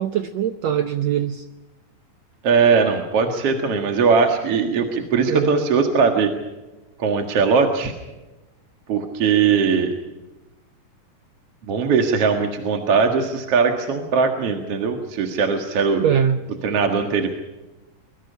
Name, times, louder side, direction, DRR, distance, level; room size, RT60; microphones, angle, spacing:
voice 1, 0.0-1.5 5.3-5.5 16.0-16.4, right 9 dB, 75° right, 9 dB, 1.6 m, -22 dB
voice 2, 2.4-6.3 7.0-7.9 8.9-9.9 11.7-16.0 16.6-17.3, right 5 dB, 50° right, 5 dB, 2.3 m, -20 dB
24.5 x 22.5 x 5.6 m, 1.1 s
omnidirectional pair, 4.1 m